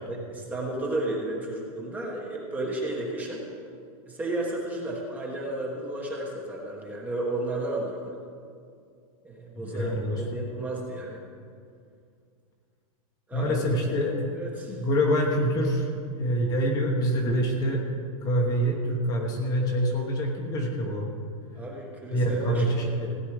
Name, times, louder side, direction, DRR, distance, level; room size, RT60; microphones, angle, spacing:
voice 1, 0.1-3.4 4.1-8.1 9.2-9.9 10.2-11.2 13.3-13.5 13.9-14.0 14.3-14.8 21.5-22.9, right 1 dB, 10° right, -2 dB, 1.2 m, -33 dB
voice 2, 9.6-10.2 13.3-14.1 14.7-17.9 18.2-21.1 22.1-23.1, equal, 20° left, 1 dB, 1.2 m, -26 dB
16.5 x 9.4 x 4.9 m, 2.3 s
supercardioid pair, 170°, 19 cm